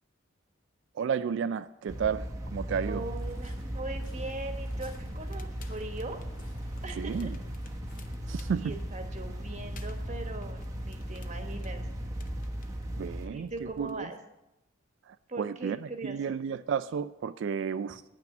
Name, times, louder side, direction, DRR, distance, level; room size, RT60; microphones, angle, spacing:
voice 1, 0.9-3.1 6.9-7.4 8.3-8.7 12.9-14.1 15.1-18.0, right 7 dB, 65° right, 12 dB, 0.3 m, -32 dB
sound 1, 1.9-13.3, equal, 15° right, 0.9 m, -37 dB
voice 2, 2.8-6.2 6.8-7.3 8.5-11.8 13.3-14.2 15.3-16.3, right 2 dB, 35° right, 4 dB, 1.3 m, -40 dB
Waves surf, 2.9-11.7, left 2 dB, 75° left, 2.0 m, -61 dB
Crackle, 4.6-14.0, left 3 dB, 45° left, 0.6 m, -53 dB
9.2 x 5.9 x 7.7 m, 0.90 s
head